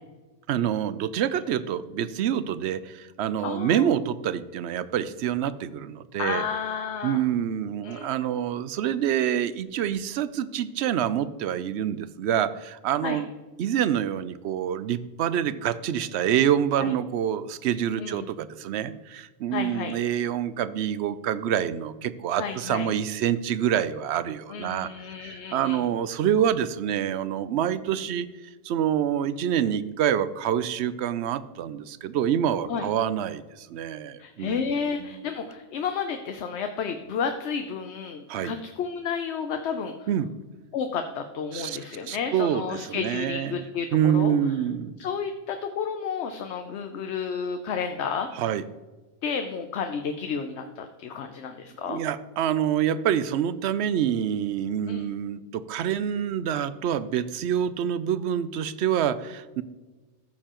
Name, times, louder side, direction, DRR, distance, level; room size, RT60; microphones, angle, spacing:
voice 1, 0.5-6.4 7.0-13.3 13.6-24.9 25.2-28.3 28.6-35.2 38.3-38.5 40.1-40.3 41.5-41.8 42.1-45.0 48.3-48.6 51.8-59.6, right 9 dB, 75° right, 15 dB, 0.8 m, -26 dB
voice 2, 3.4-3.9 6.2-7.3 7.8-8.1 13.0-13.2 16.8-16.9 18.0-18.3 19.5-19.9 22.4-22.9 24.5-25.8 32.7-32.9 34.2-39.9 40.7-44.3 45.0-48.3 49.2-52.0 54.9-55.0, left 6 dB, 75° left, 6 dB, 1.0 m, -31 dB
14.5 x 6.7 x 3.0 m, 1.2 s
omnidirectional pair, 1.2 m